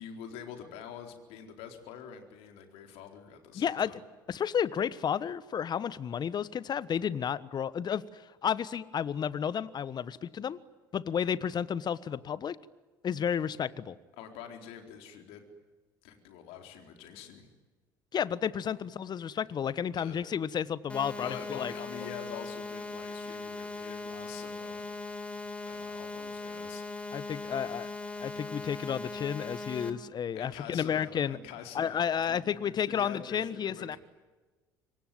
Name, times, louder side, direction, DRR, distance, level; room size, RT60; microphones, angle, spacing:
voice 1, 0.0-4.0 14.2-15.5 16.0-17.5 19.9-20.2 21.2-24.9 25.6-26.8 30.3-34.0, left 8 dB, 65° left, 5 dB, 4.2 m, -46 dB
voice 2, 3.5-3.9 4.3-10.6 10.9-12.6 13.0-14.0 18.1-21.7 27.1-27.9 28.2-31.4 31.7-34.0, left 8 dB, 40° left, 18 dB, 1.3 m, -32 dB
sound 1, 20.9-29.9, left 3 dB, 10° left, 4.0 m, -39 dB
27.0 x 23.0 x 9.3 m, 1.2 s
hypercardioid pair, 60°, 11 cm